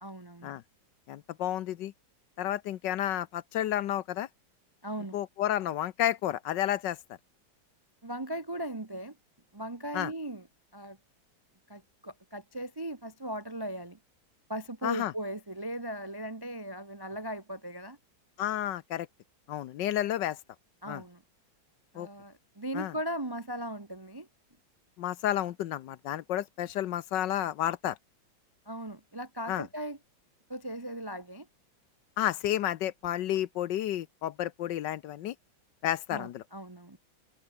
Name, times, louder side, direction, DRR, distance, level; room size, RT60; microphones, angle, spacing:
voice 1, 0.0-0.6 4.8-5.2 8.0-9.2 9.5-10.5 10.7-11.0 11.7-14.0 14.5-18.0 20.8-21.2 21.9-24.3 28.7-30.0 30.5-31.5 36.1-37.0, right 1 dB, 25° right, 0.5 m, -38 dB
voice 2, 1.1-1.9 2.4-4.3 5.1-7.0 9.9-10.1 14.8-15.1 18.4-19.1 19.5-20.4 20.9-21.0 21.9-22.1 22.7-22.9 25.0-28.0 29.5-29.7 32.2-35.3 35.8-36.4, left 12 dB, 70° left, 1.3 m, -31 dB
omnidirectional pair, 2.2 m